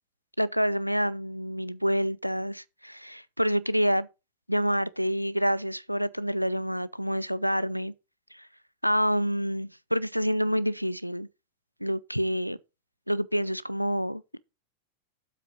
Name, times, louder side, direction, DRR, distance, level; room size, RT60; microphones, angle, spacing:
voice 1, 0.4-4.1 4.5-7.9 8.3-8.5 8.8-11.3 11.8-12.6 13.1-14.4, equal, 90° right, 0.4 m, -27 dB
7.7 x 5.3 x 5.2 m
figure-of-eight pair, 90°, 0 cm